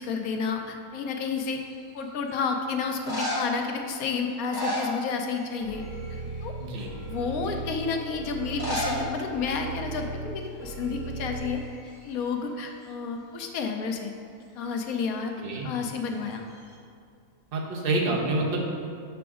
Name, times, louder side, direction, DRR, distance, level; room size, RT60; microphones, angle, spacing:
voice 1, 0.0-1.6 1.9-5.8 6.1-6.6 7.1-11.6 12.0-14.1 14.6-15.3 15.6-16.4, left 5 dB, 70° left, 4 dB, 1.0 m, -31 dB
sound 1, 1.4-1.9 2.8-3.6 4.3-5.5 5.8-6.2 6.8-6.9 8.4-9.0 9.3-9.4 9.6-9.7 10.5-10.7 10.9-12.1 16.1-16.7, equal, 15° left, 0.9 m, -33 dB
sound 2, 5.6-11.4, right 2 dB, 10° right, 1.6 m, -37 dB
voice 2, 15.4-15.7 17.5-18.6, right 2 dB, 45° right, -1 dB, 0.9 m, -27 dB
6.0 x 5.9 x 3.6 m, 2.3 s
omnidirectional pair, 1.6 m